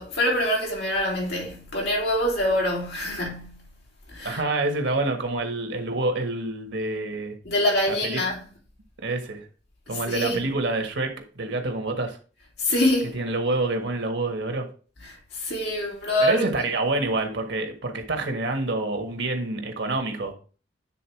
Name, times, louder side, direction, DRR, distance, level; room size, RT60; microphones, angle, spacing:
voice 1, 0.0-3.6 4.1-4.4 7.4-8.5 9.9-10.5 12.6-13.2 15.3-16.7, left 1 dB, 65° left, 3.2 m, -25 dB
voice 2, 4.2-7.3 7.9-8.2 9.0-9.4 9.9-12.2 13.1-14.7 16.2-20.3, right 2 dB, 85° right, 1.6 m, -27 dB
9.1 x 3.9 x 4.6 m
head